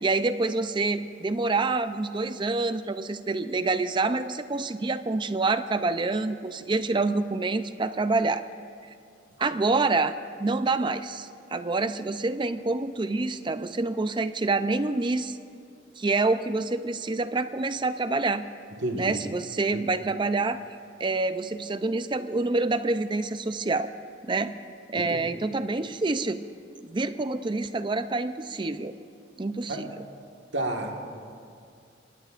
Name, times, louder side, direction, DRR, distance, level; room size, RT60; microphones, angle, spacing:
voice 1, 0.0-8.4 9.4-15.4 16.0-18.4 18.9-20.6 21.0-23.9 24.2-24.5 24.9-26.4 26.8-28.9 29.4-30.0, right 3 dB, 25° right, 11 dB, 0.5 m, -27 dB
voice 2, 18.8-19.2 19.7-19.8 24.9-25.2 29.7-29.8 30.5-31.3, right 1 dB, 75° right, 2 dB, 1.6 m, -31 dB
25.5 x 19.5 x 2.5 m, 2.3 s
head